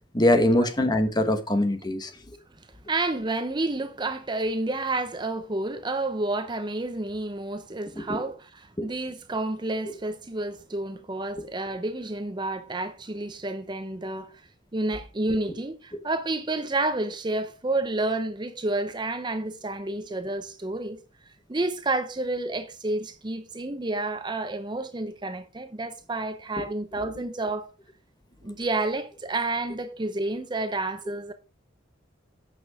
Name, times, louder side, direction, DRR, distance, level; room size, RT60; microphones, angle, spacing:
voice 1, 0.1-2.1 8.1-8.2 8.8-8.9, left 1 dB, 20° left, 1.1 m, -22 dB
voice 2, 2.9-14.3 14.7-21.0 21.5-27.7 28.4-31.3, right 2 dB, 25° right, 0.7 m, -30 dB
8.3 x 6.1 x 4.7 m
head